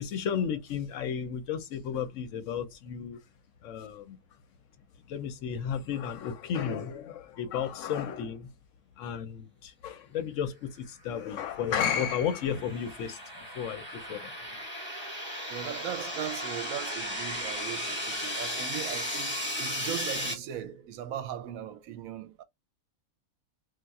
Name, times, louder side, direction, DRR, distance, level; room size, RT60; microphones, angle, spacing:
voice 1, 0.0-3.2 3.6-4.2 5.1-8.5 9.0-14.3, left 8 dB, 70° left, 0.9 m, -33 dB
sound 1, 11.4-20.3, equal, 10° left, 1.0 m, -35 dB
voice 2, 15.5-22.4, right 10 dB, 80° right, 1.0 m, -38 dB
2.4 x 2.2 x 3.9 m
omnidirectional pair, 1.4 m